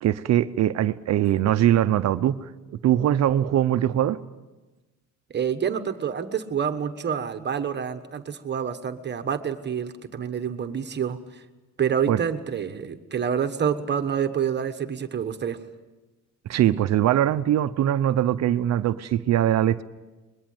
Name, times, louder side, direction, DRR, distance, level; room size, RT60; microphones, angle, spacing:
voice 1, 0.0-2.5 2.8-4.2 12.1-12.2 16.5-19.8, right 11 dB, 55° right, 0.7 m, -22 dB
voice 2, 5.3-11.2 11.8-15.6, right 8 dB, 35° right, 1.3 m, -27 dB
23.5 x 22.0 x 7.9 m
cardioid pair, 145°, 32 cm